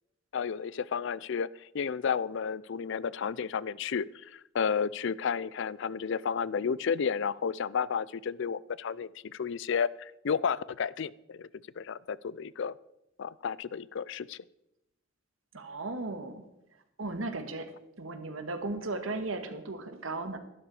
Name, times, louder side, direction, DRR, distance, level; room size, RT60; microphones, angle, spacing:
voice 1, 0.3-11.5 11.8-12.7 13.2-14.4, left 6 dB, 65° left, 20 dB, 0.4 m, -32 dB
voice 2, 15.5-16.4 17.0-17.7 18.0-20.4, right 2 dB, 85° right, 7 dB, 1.7 m, -36 dB
13.0 x 12.0 x 4.8 m, 0.86 s
head